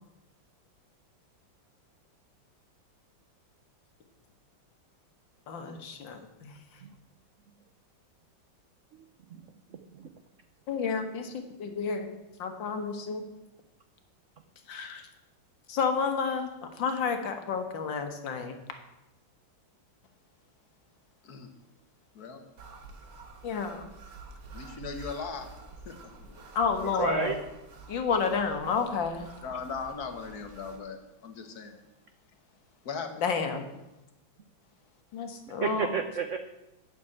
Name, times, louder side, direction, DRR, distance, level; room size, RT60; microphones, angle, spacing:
voice 1, 5.5-6.6 10.7-12.1 12.4-13.2 14.7-15.1 15.7-18.6 23.4-23.8 26.6-27.3 27.9-29.3 33.2-33.7 35.1-35.9, left 5 dB, 70° left, 6 dB, 2.0 m, -30 dB
voice 2, 8.9-10.1 26.8-27.4 35.5-36.4, right 7 dB, 90° right, 7 dB, 0.6 m, -33 dB
sound 1, 22.6-30.8, right 4 dB, 60° right, 2.0 m, -48 dB
voice 3, 24.5-25.5 25.8-26.1 26.4-26.5 29.4-31.8 32.8-33.1, left 5 dB, 55° left, 7 dB, 1.6 m, -38 dB
9.3 x 6.8 x 8.6 m, 0.95 s
omnidirectional pair, 2.1 m